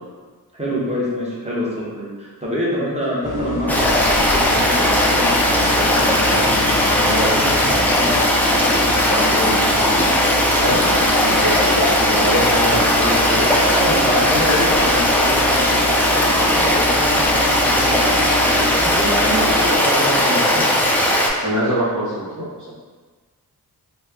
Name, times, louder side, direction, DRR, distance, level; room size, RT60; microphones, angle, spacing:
voice 1, 0.5-9.9 13.7-18.4 18.8-20.7, equal, 20° right, -6 dB, 0.8 m, -26 dB
sound 1, 3.2-19.7, left 2 dB, 55° left, 0.6 m, -27 dB
Stream, 3.7-21.3, left 1 dB, 5° left, 0.4 m, -17 dB
voice 2, 10.5-13.7 14.0-14.4 21.4-22.6, equal, 55° right, -12 dB, 0.9 m, -23 dB
3.0 x 2.0 x 3.4 m, 1.4 s
wide cardioid pair, 80°, 37 cm